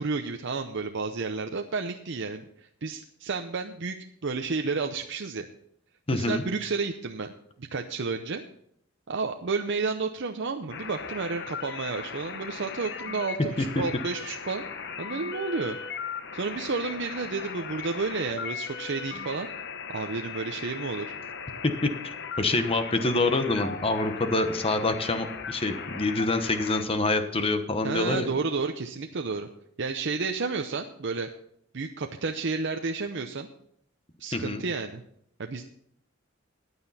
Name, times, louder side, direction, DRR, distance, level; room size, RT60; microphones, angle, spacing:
voice 1, 0.0-4.0 4.2-5.5 6.1-7.3 7.6-8.4 9.1-14.6 15.0-15.8 16.3-19.5 19.9-21.1 27.8-29.5 29.8-31.3 31.7-33.5 34.2-35.0 35.4-35.6, right 4 dB, 60° right, 5 dB, 0.7 m, -31 dB
voice 2, 6.1-6.4 13.6-13.8 21.6-28.3 34.3-34.6, left 2 dB, 30° left, 8 dB, 1.0 m, -26 dB
sound 1, 10.7-26.8, left 5 dB, 55° left, 1.0 m, -38 dB
15.0 x 9.7 x 4.2 m, 0.71 s
head